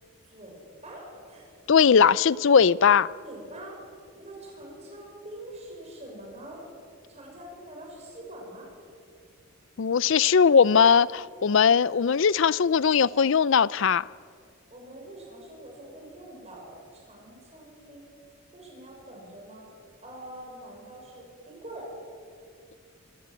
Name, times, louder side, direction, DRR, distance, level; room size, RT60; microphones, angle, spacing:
voice 1, 0.2-1.6 3.2-3.8 4.2-6.6 7.1-8.7 14.7-18.1 18.5-19.6 20.0-21.9, right 1 dB, 30° right, -1 dB, 6.5 m, -44 dB
voice 2, 1.7-3.1 9.8-14.0, left 6 dB, 60° left, 21 dB, 0.4 m, -19 dB
25.0 x 16.5 x 8.4 m, 2.3 s
head